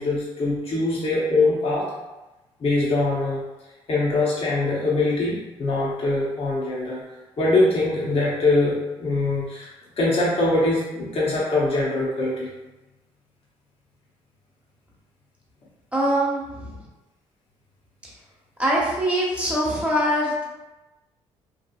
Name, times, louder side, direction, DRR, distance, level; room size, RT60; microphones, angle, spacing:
voice 1, 0.0-1.9 2.6-3.4 3.9-7.0 7.4-9.7 10.0-12.5, left 2 dB, 50° left, -5 dB, 0.7 m, -22 dB
voice 2, 15.9-16.8 18.0-18.1 18.6-20.4, equal, 10° right, -5 dB, 1.0 m, -23 dB
2.8 x 2.3 x 2.3 m, 1.1 s
supercardioid pair, 65°, 13 cm